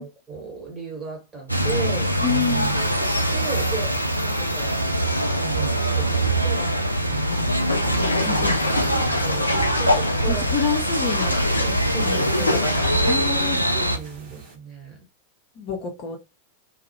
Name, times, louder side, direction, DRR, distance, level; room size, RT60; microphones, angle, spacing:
voice 1, 0.0-2.1 2.7-4.0 4.2-4.8 5.4-6.7 8.0-8.5 9.2-9.5 9.8-10.5 11.6-12.6 13.4-15.0, right 3 dB, 20° right, 1.2 m, -35 dB
sound 1, 1.5-14.0, right 1 dB, 90° right, 0.3 m, -23 dB
voice 2, 2.2-2.7 7.3-7.5 8.3-9.1 10.3-11.4 12.0-13.6 15.6-16.2, left 6 dB, 40° left, 0.6 m, -29 dB
sound 2, 5.4-14.6, right 7 dB, 50° right, 0.8 m, -38 dB
sound 3, 7.7-13.1, left 1 dB, 80° left, 0.4 m, -25 dB
2.3 x 2.0 x 2.7 m
figure-of-eight pair, 90°, 0 cm